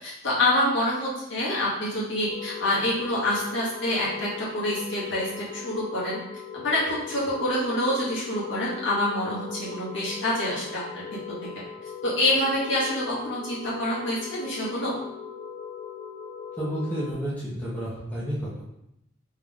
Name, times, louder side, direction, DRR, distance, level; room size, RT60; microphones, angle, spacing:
voice 1, 0.0-6.2 6.5-11.0 12.0-14.9, left 1 dB, 60° left, -7 dB, 1.5 m, -26 dB
sound 1, 2.3-17.1, left 7 dB, 30° left, 0.4 m, -39 dB
voice 2, 16.6-18.6, equal, 10° left, -9 dB, 0.9 m, -31 dB
3.6 x 3.5 x 3.6 m, 0.83 s
head